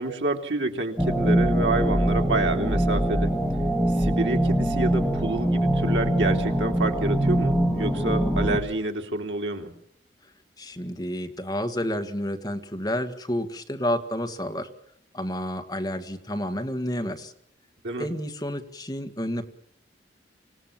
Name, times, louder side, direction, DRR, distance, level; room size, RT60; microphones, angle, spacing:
voice 1, 0.0-3.3 3.9-9.7 17.8-18.1, right 2 dB, 90° right, 3 dB, 3.1 m, -28 dB
sound 1, 1.0-8.6, right 1 dB, 5° right, 2.4 m, -23 dB
voice 2, 10.6-14.7 15.1-17.3 18.0-19.4, equal, 20° left, 6 dB, 1.8 m, -30 dB
26.0 x 18.0 x 7.4 m, 0.72 s
head